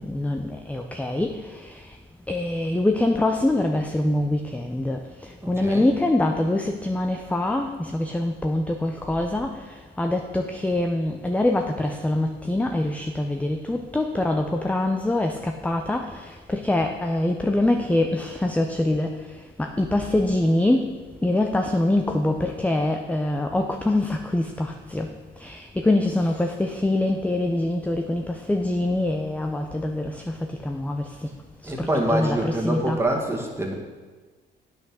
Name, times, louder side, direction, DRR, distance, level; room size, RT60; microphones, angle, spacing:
voice 1, 0.0-1.7 2.3-5.0 5.5-9.5 10.0-19.2 19.6-20.9 21.2-25.1 25.4-30.3 30.6-31.1 31.6-33.0, left 1 dB, 5° left, 4 dB, 0.6 m, -24 dB
voice 2, 5.4-5.9 31.6-33.7, right 1 dB, 10° right, 0 dB, 1.9 m, -25 dB
8.3 x 5.9 x 6.4 m, 1.3 s
cardioid pair, 90°, 20 cm